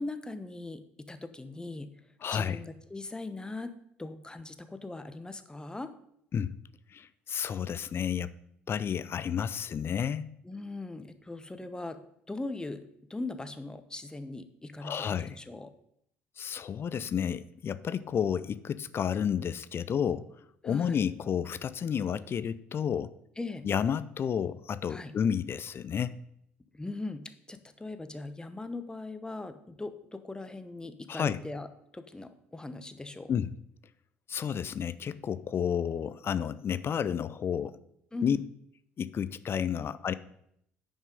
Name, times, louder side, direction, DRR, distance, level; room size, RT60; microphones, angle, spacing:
voice 1, 0.0-1.9 2.3-3.7 4.0-5.9 10.4-12.0 12.3-12.8 13.1-15.7 20.6-21.0 23.4-23.7 24.9-25.1 26.7-27.2 27.5-31.7 31.9-33.3 38.1-38.4, left 2 dB, 15° left, 10 dB, 0.9 m, -40 dB
voice 2, 2.2-2.6 6.3-6.5 6.9-8.3 8.7-10.3 14.8-15.4 16.4-20.3 20.6-23.1 23.6-26.2 31.1-31.4 33.3-33.5 34.3-37.8 38.2-38.4 39.0-40.1, left 8 dB, 40° left, 15 dB, 0.5 m, -31 dB
9.3 x 5.5 x 5.3 m, 0.72 s
figure-of-eight pair, 55°, 6 cm